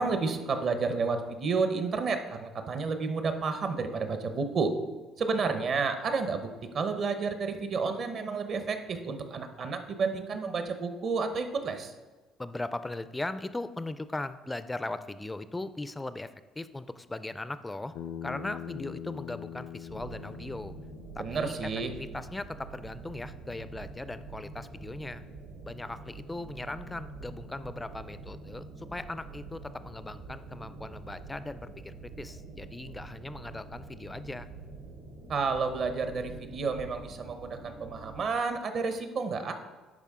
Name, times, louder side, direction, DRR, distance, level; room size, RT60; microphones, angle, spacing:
voice 1, 0.0-4.7 5.2-11.9 21.2-21.9 35.3-39.5, right 4 dB, 50° right, 8 dB, 0.8 m, -31 dB
voice 2, 12.4-17.9 18.2-20.7 21.2-25.2 25.6-34.5, left 2 dB, 10° left, 13 dB, 0.3 m, -39 dB
Bass guitar, 18.0-22.3, left 9 dB, 75° left, 0.5 m, -43 dB
sound 1, 19.9-38.2, right 3 dB, 70° right, 1.9 m, -46 dB
11.0 x 4.3 x 3.7 m, 1.3 s
cardioid pair, 120°, 0 cm